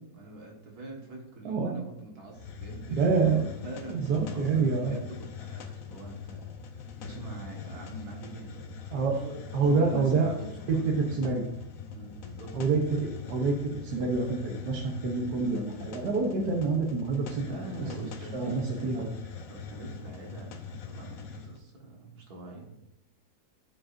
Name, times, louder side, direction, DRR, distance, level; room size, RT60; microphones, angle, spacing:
voice 1, 0.1-11.0 11.9-12.6 17.4-19.1 19.5-22.7, right 2 dB, 65° right, -1 dB, 2.1 m, -44 dB
voice 2, 1.4-1.7 2.9-3.5 3.9-4.9 8.9-9.2 9.5-10.3 10.7-11.4 12.5-13.6 13.8-17.4 18.3-19.1, right 4 dB, 90° right, 0 dB, 1.5 m, -27 dB
Hiss, 2.3-21.6, left 6 dB, 60° left, 1.1 m, -43 dB
14.5 x 4.9 x 2.6 m, 0.85 s
omnidirectional pair, 1.7 m